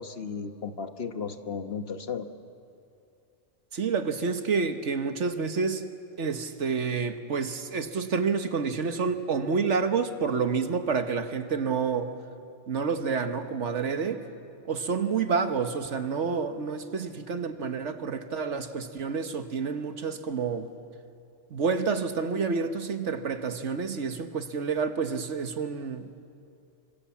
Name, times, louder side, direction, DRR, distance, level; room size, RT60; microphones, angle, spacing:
voice 1, 0.0-2.3, left 5 dB, 60° left, 7 dB, 1.4 m, -35 dB
voice 2, 3.7-5.8 6.2-12.2 12.7-14.2 14.7-20.7 21.5-26.1, right 5 dB, 80° right, 8 dB, 1.6 m, -29 dB
29.5 x 25.5 x 7.3 m, 2.5 s
omnidirectional pair, 1.2 m